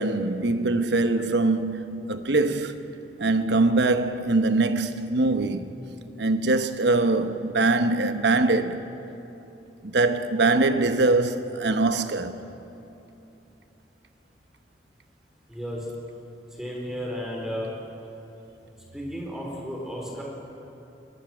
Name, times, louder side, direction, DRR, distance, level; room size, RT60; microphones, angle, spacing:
voice 1, 0.0-2.8 3.2-5.7 6.2-8.8 9.8-12.4, right 2 dB, 80° right, 1.0 m, -23 dB
voice 2, 15.5-15.9 16.6-17.7 18.9-20.2, equal, 5° right, 4.4 m, -33 dB
23.0 x 20.0 x 6.3 m
head